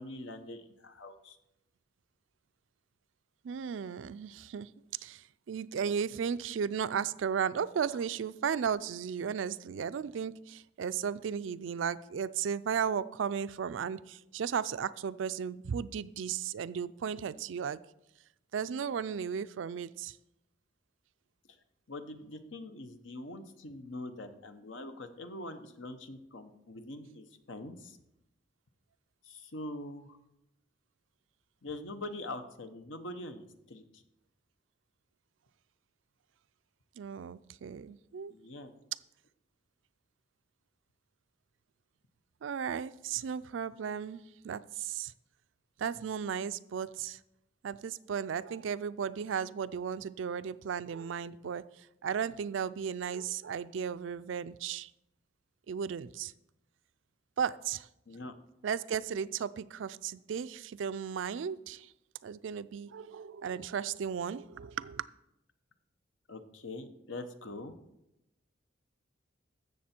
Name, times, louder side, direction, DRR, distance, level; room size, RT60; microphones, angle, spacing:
voice 1, 0.0-1.4 21.9-28.0 29.2-30.2 31.6-34.0 38.3-38.7 58.1-58.3 66.3-67.7, left 2 dB, 80° left, 8 dB, 1.0 m, -43 dB
voice 2, 3.4-17.8 18.5-20.2 37.0-38.3 42.4-45.1 45.8-47.2 47.6-54.9 55.7-56.3 57.4-57.9 58.6-61.9 62.2-65.1, right 7 dB, 75° right, 15 dB, 0.4 m, -35 dB
14.5 x 6.8 x 4.4 m, 0.88 s
head